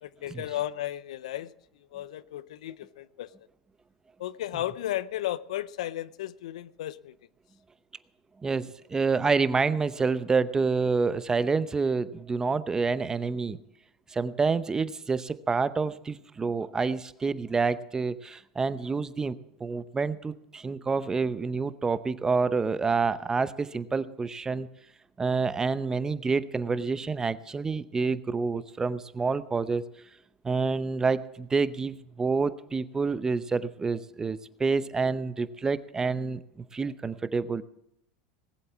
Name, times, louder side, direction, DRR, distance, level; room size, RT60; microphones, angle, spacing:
voice 1, 0.0-3.3 4.2-7.2, left 13 dB, 80° left, 0.6 m, -34 dB
voice 2, 8.4-13.6 14.1-24.7 25.2-29.8 30.4-37.6, right 4 dB, 15° right, 0.7 m, -28 dB
19.0 x 7.9 x 7.2 m
hypercardioid pair, 105°, 4 cm